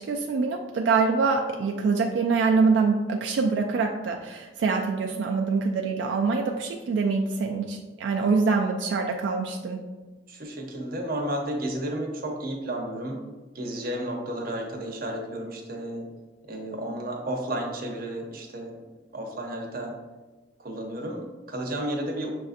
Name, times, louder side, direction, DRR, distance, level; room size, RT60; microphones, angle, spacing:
voice 1, 0.1-9.8, right 4 dB, 85° right, 2 dB, 0.3 m, -25 dB
voice 2, 10.3-13.2 13.5-16.1 16.5-18.8 19.1-20.0 20.6-22.3, right 1 dB, 55° right, 1 dB, 0.7 m, -32 dB
6.1 x 2.5 x 2.5 m, 1.2 s
head